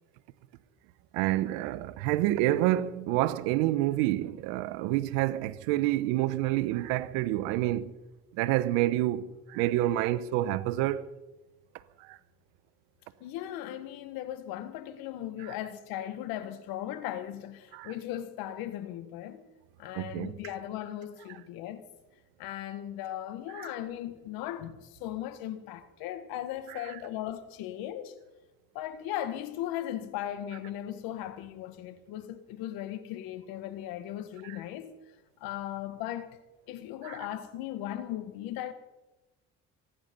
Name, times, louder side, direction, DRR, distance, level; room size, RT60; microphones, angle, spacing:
voice 1, 1.1-7.9 8.3-11.1 12.0-12.2 17.7-17.9 19.9-20.3 23.5-23.7 26.7-27.0 34.4-34.6 37.0-37.2, right 15 dB, 85° right, 0.9 m, -28 dB
voice 2, 13.2-19.5 19.8-21.9 22.4-28.1 28.8-35.0 35.4-36.4 36.7-38.7, left 12 dB, 80° left, 1.6 m, -37 dB
24.5 x 10.5 x 5.3 m
supercardioid pair, 70°, 35 cm